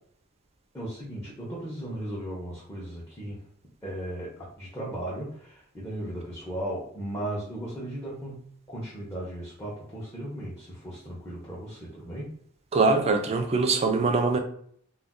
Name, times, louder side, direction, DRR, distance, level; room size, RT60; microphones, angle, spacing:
voice 1, 0.7-3.4 3.8-12.3, right 1 dB, 10° left, 0.6 m, -36 dB
voice 2, 12.7-14.4, right 3 dB, 30° right, 0.3 m, -23 dB
2.4 x 2.2 x 3.5 m
head